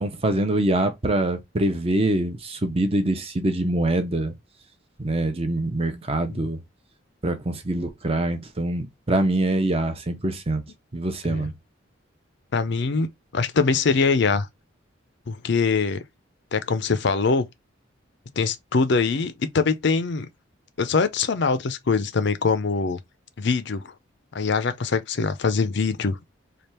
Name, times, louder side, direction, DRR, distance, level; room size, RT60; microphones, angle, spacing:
voice 1, 0.0-4.3 5.0-6.6 7.2-10.6 10.9-11.5, right 1 dB, 30° right, 0.7 m, -24 dB
voice 2, 12.5-14.5 15.3-16.0 16.5-17.5 18.4-20.3 20.8-23.0 23.4-23.9 24.3-26.2, left 4 dB, 60° left, 0.5 m, -23 dB
3.4 x 2.4 x 4.2 m
head